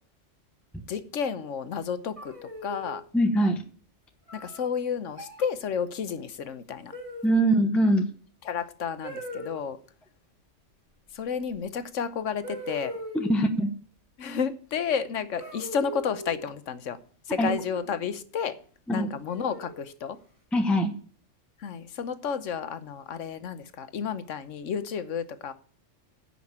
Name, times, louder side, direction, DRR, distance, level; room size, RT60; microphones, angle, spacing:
voice 1, 0.9-2.3 2.6-3.0 4.3-6.9 8.5-9.8 11.1-12.9 14.2-17.0 17.3-18.5 18.9-20.2 21.6-25.5, left 7 dB, 80° left, 1.3 m, -31 dB
sound 1, 2.2-3.0 4.3-4.7 5.1-5.5 6.9-7.5 9.0-9.6 11.5-11.6 12.4-13.4 15.3-16.4 17.4-18.0 19.3-19.9, equal, 25° right, 2.8 m, -39 dB
voice 2, 3.1-3.6 7.2-8.1 13.1-13.7 17.4-17.5 18.9-19.1 20.5-20.9, right 1 dB, ahead, 0.9 m, -22 dB
10.5 x 5.8 x 8.6 m
omnidirectional pair, 1.3 m